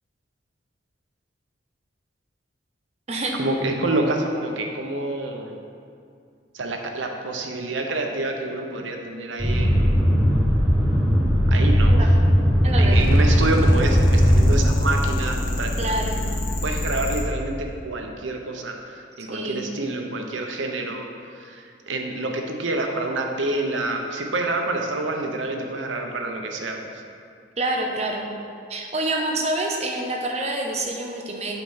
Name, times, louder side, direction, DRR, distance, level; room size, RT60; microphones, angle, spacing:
voice 1, 3.4-5.6 6.5-10.0 11.5-12.0 12.8-15.7 16.6-21.1 21.3-26.9, right 2 dB, 80° right, 3 dB, 0.8 m, -27 dB
sound 1, 9.4-14.7, equal, ahead, 1.2 m, -18 dB
voice 2, 12.6-13.0 15.8-16.3 19.3-19.7 27.6-28.3 28.7-31.5, right 2 dB, 35° right, 1 dB, 0.8 m, -27 dB
sound 2, 12.9-17.2, left 1 dB, 50° left, 1.2 m, -27 dB
8.1 x 4.2 x 5.6 m, 2.3 s
head